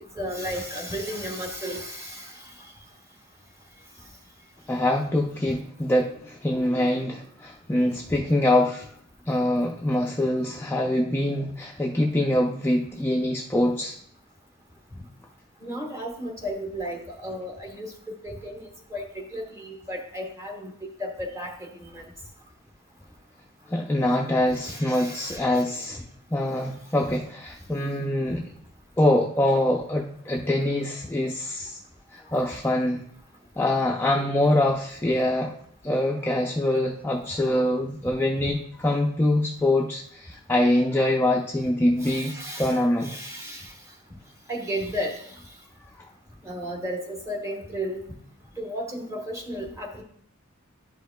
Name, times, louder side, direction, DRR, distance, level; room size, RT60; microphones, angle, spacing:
voice 1, 0.1-2.5 8.2-8.3 15.6-20.7 21.0-22.1 24.6-25.8 27.0-27.1 42.0-43.7 44.5-45.3 46.4-48.0 48.6-50.0, equal, 15° right, 1 dB, 1.2 m, -34 dB
voice 2, 4.7-8.9 9.3-13.9 23.7-26.0 26.3-28.4 29.0-31.8 32.1-33.0 33.6-35.5 35.8-43.1 46.0-46.1, left 1 dB, 10° left, -1 dB, 0.4 m, -24 dB
10.5 x 5.0 x 2.2 m, 0.65 s
head